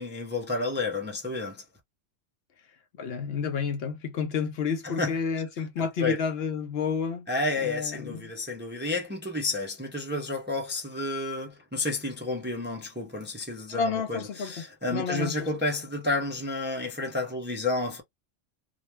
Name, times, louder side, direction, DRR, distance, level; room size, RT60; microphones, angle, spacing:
voice 1, 0.0-1.6 4.8-5.2 5.8-6.2 7.3-18.0, left 2 dB, 15° right, 0.4 m, -31 dB
voice 2, 2.9-7.3 7.6-8.3 13.7-15.5, left 6 dB, 65° left, 0.7 m, -30 dB
2.3 x 2.2 x 3.0 m
omnidirectional pair, 1.2 m